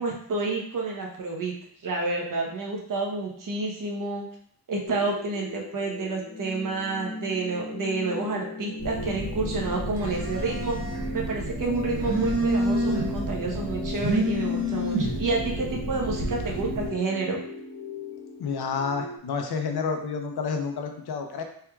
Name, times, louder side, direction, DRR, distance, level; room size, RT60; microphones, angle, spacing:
voice 1, 0.0-1.5 1.8-4.3 4.7-10.8 11.1-17.4, right 3 dB, 55° right, 0 dB, 1.0 m, -29 dB
sound 1, 4.8-19.2, left 2 dB, 40° left, 0.8 m, -37 dB
Telephone, 8.8-16.9, equal, 35° right, 1.4 m, -29 dB
voice 2, 18.4-21.4, left 5 dB, 75° left, 4 dB, 0.7 m, -29 dB
4.4 x 3.5 x 2.3 m, 0.65 s
wide cardioid pair, 100°, 38 cm